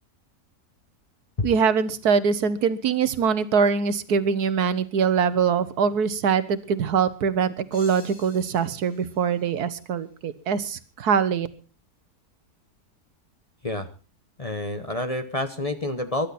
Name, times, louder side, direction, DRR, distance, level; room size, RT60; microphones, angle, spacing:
voice 1, 1.4-11.5, right 6 dB, 75° right, 14 dB, 1.5 m, -23 dB
sound 1, 7.7-10.4, left 2 dB, 80° left, 4.3 m, -50 dB
voice 2, 14.4-16.3, left 2 dB, 25° left, 7 dB, 1.0 m, -28 dB
23.0 x 12.0 x 4.2 m, 0.35 s
omnidirectional pair, 1.7 m